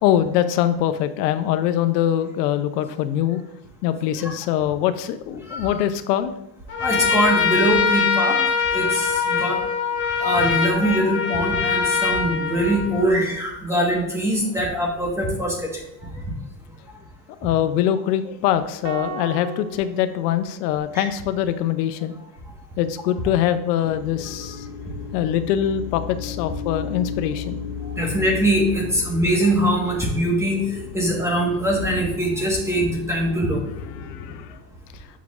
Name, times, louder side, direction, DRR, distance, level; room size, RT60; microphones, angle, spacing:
voice 1, 0.0-3.4 3.8-6.3 17.4-22.1 22.8-24.7 25.1-27.6 34.0-34.6, left 11 dB, 75° left, 11 dB, 0.6 m, -23 dB
voice 2, 5.5-5.8 6.8-8.4 8.7-9.6 10.1-16.1 20.9-21.1 27.8-33.6, right 1 dB, 5° right, -1 dB, 1.2 m, -22 dB
Trumpet, 6.7-13.2, left 6 dB, 25° left, 1.0 m, -23 dB
sound 1, 18.8-21.2, right 3 dB, 45° right, 0.6 m, -37 dB
sound 2, 23.8-34.4, left 6 dB, 45° left, 1.0 m, -35 dB
7.3 x 5.9 x 2.4 m, 0.81 s
supercardioid pair, 140°, 49 cm